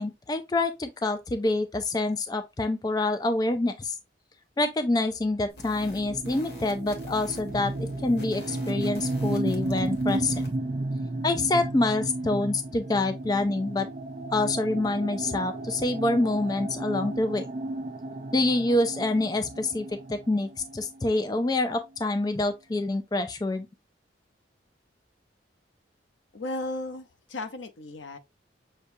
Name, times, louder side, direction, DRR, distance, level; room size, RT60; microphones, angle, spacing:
voice 1, 0.0-3.9 4.6-10.4 11.2-13.9 14.3-17.5 18.3-23.7, left 2 dB, 20° left, 0.3 m, -26 dB
sound 1, 5.5-10.6, left 1 dB, 65° left, 1.3 m, -47 dB
sound 2, 5.7-21.3, right 2 dB, 40° right, 0.5 m, -33 dB
voice 2, 26.3-28.2, left 2 dB, 85° left, 0.7 m, -35 dB
6.4 x 2.3 x 2.6 m
head